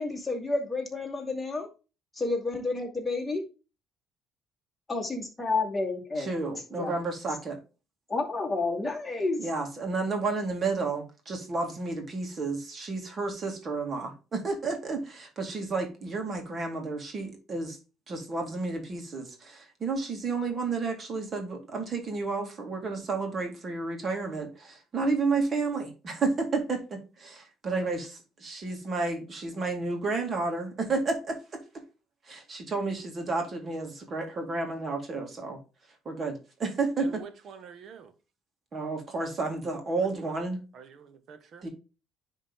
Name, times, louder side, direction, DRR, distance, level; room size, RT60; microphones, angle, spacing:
voice 1, 0.0-1.7 2.1-3.4 4.9-6.3 6.7-7.0 8.1-9.5, left 3 dB, 10° left, 2.4 m, -30 dB
voice 2, 6.2-7.6 9.4-17.8 18.1-31.6 32.3-35.6 36.1-37.2 38.7-40.6 41.6-41.7, right 3 dB, 35° right, 2.3 m, -31 dB
voice 3, 37.0-38.1 40.2-40.4 40.7-41.7, right 6 dB, 55° right, 1.3 m, -47 dB
10.0 x 3.7 x 3.6 m
cardioid pair, 130°, 0 cm